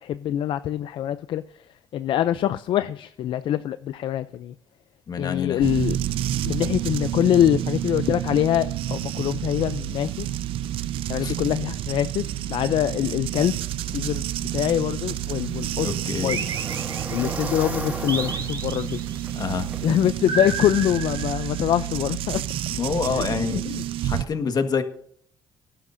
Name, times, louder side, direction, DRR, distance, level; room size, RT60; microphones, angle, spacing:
voice 1, 0.0-1.4 1.9-4.5 5.2-6.0 6.4-10.3 11.1-12.2 12.5-13.6 13.9-14.2 14.5-15.9 16.2-16.4 17.1-19.0 19.8-22.4 23.1-23.2 23.7-23.8, left 11 dB, 70° left, 13 dB, 0.5 m, -24 dB
voice 2, 5.1-5.7 11.2-11.3 15.8-16.4 19.4-19.7 22.7-23.6 24.0-24.8, left 6 dB, 45° left, 7 dB, 1.6 m, -27 dB
sound 1, 5.6-24.2, right 12 dB, 80° right, 0.5 m, -29 dB
sound 2, 15.1-20.1, right 2 dB, 15° right, 1.9 m, -37 dB
sound 3, 16.3-17.4 18.1-19.2 20.3-21.8, right 4 dB, 45° right, 2.8 m, -32 dB
18.5 x 11.0 x 2.7 m, 0.64 s
cardioid pair, 105°, 9 cm